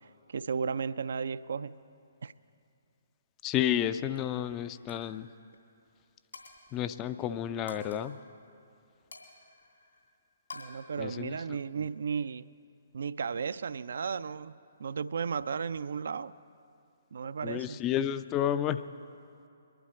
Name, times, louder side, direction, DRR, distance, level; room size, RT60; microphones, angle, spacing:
voice 1, 0.0-1.8 2.2-2.3 10.5-12.5 12.9-16.3 17.1-17.8, right 6 dB, 60° right, 15 dB, 0.3 m, -34 dB
voice 2, 3.4-5.3 6.7-8.2 11.0-11.4 17.4-18.8, left 10 dB, 20° left, 12 dB, 0.4 m, -31 dB
Coin (dropping), 4.2-4.4 4.7-5.1 5.4-5.6 6.3-6.8 7.7-8.0 9.1-10.0 10.5-10.6, left 4 dB, 70° left, 2.7 m, -48 dB
22.5 x 11.5 x 4.2 m, 2.6 s
figure-of-eight pair, 130°, 0 cm